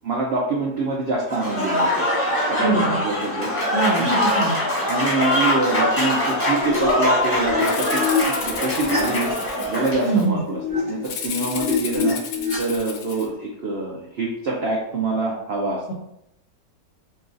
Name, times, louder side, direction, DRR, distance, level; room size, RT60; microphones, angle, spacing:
voice 1, 0.0-2.1 2.4-3.5 4.0-4.2 4.9-9.3 9.7-12.2 12.6-15.8, right 3 dB, 75° right, -2 dB, 0.5 m, -25 dB
Applause / Crowd, 1.3-10.1, left 1 dB, 10° left, 0.9 m, -23 dB
voice 2, 2.6-3.0 3.7-4.6 10.0-10.4 15.9-16.0, right 3 dB, 65° left, -2 dB, 0.8 m, -23 dB
sound 1, 6.3-7.0 7.4-13.4, left 5 dB, 45° right, 1.9 m, -27 dB
Rattle (instrument), 7.6-10.3 11.0-13.3, left 7 dB, 85° left, 1.3 m, -33 dB
6.8 x 2.3 x 2.6 m, 0.81 s
omnidirectional pair, 1.9 m